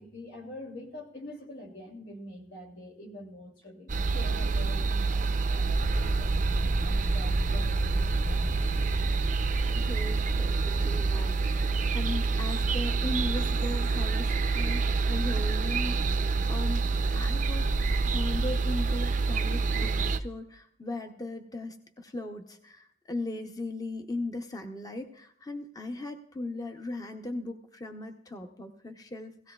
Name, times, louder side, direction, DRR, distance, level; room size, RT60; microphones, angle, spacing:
voice 1, 0.0-6.3 6.8-8.9, left 1 dB, 80° left, 0 dB, 2.7 m, -45 dB
sound 1, 3.9-20.2, right 4 dB, 40° right, 0.5 m, -27 dB
sound 2, 5.6-17.5 17.8-18.1 18.4-18.6, equal, 55° left, 2.9 m, -37 dB
voice 2, 9.7-29.5, left 2 dB, 20° left, 6 dB, 0.7 m, -38 dB
17.0 x 15.5 x 2.3 m, 0.68 s
head